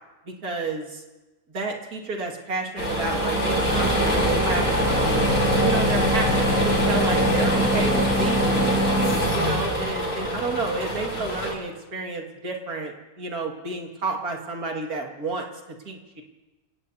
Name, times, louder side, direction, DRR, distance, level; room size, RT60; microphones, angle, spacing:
voice 1, 0.3-1.0 1.5-5.3 5.6-8.9 9.3-15.5 15.9-16.2, right 3 dB, 85° right, 1 dB, 2.5 m, -31 dB
sound 1, 2.8-11.5, equal, 80° left, 5.7 m, -22 dB
28.0 x 18.0 x 2.7 m, 1.1 s
omnidirectional pair, 1.5 m